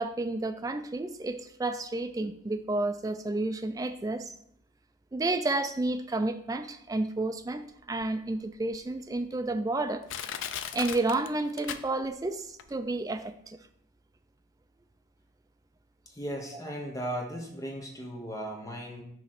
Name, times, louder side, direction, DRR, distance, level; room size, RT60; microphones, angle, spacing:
voice 1, 0.0-4.3 5.1-7.6 7.9-10.1 10.7-13.6, right 2 dB, 20° right, 8 dB, 0.3 m, -31 dB
Crushing, 8.0-8.1 8.7-8.8 9.5-9.6 10.1-12.3 12.6-12.7, left 8 dB, 80° left, 0.4 m, -37 dB
voice 2, 16.1-19.0, equal, 15° left, 0 dB, 1.0 m, -36 dB
6.3 x 3.1 x 5.8 m, 0.71 s
head